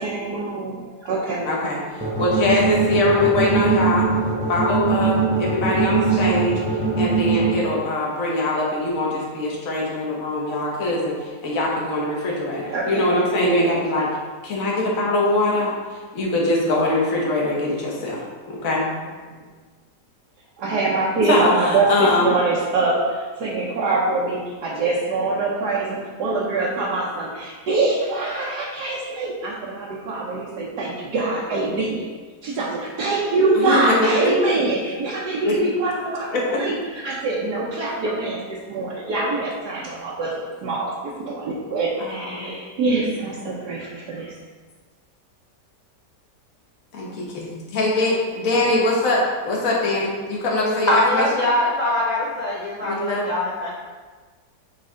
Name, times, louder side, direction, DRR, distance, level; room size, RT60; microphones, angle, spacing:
voice 1, 0.0-1.5 6.1-6.2 12.7-13.7 19.3-19.4 20.6-32.0 32.4-36.3 36.5-38.4 38.7-40.3 40.6-40.9 41.2-44.3, right 3 dB, 70° right, -5 dB, 1.4 m, -24 dB
voice 2, 1.5-1.8 2.2-4.1 4.5-6.6 7.0-14.1 14.4-15.7 16.1-18.8 21.3-22.4 33.5-34.3 35.5-35.6 36.3-36.6 42.0-42.5 46.9-47.1 47.3-47.5 47.7-51.2 52.8-53.3, left 2 dB, 55° left, -3 dB, 1.6 m, -22 dB
sound 1, 2.0-7.5, right 4 dB, 10° right, 0.3 m, -21 dB
voice 3, 50.9-53.7, left 1 dB, 70° left, -4 dB, 0.4 m, -22 dB
8.5 x 3.3 x 3.7 m, 1.4 s
omnidirectional pair, 1.8 m